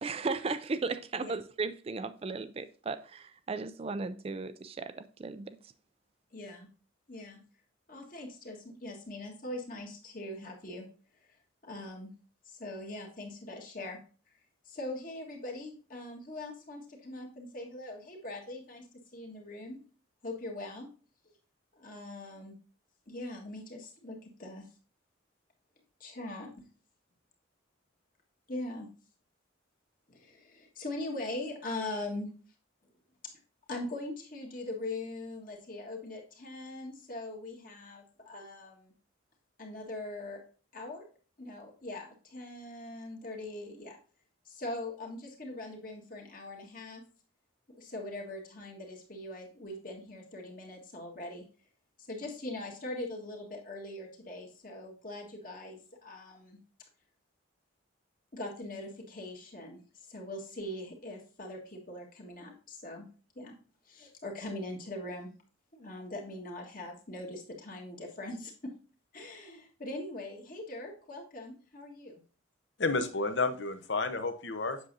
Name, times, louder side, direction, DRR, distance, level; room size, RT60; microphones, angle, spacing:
voice 1, 0.0-4.9 5.2-5.6, right 4 dB, 30° right, 0.3 m, -35 dB
voice 2, 6.3-6.7 7.1-7.4 7.9-10.9 11.6-12.1 12.4-14.0 14.6-19.8 20.2-20.9 21.2-21.4 21.7-22.5 23.1-24.7 26.0-26.6 28.5-28.9 30.1-32.3 33.7-38.9 39.6-40.4 40.7-41.1 41.4-44.0 44.4-47.0 47.7-51.4 52.0-56.6 58.3-63.1 63.3-63.5 63.8-65.3 65.7-68.8 69.1-72.2, left 2 dB, 45° left, 1.6 m, -41 dB
voice 3, 72.8-74.8, left 3 dB, 60° left, 0.8 m, -31 dB
8.0 x 6.4 x 2.7 m
head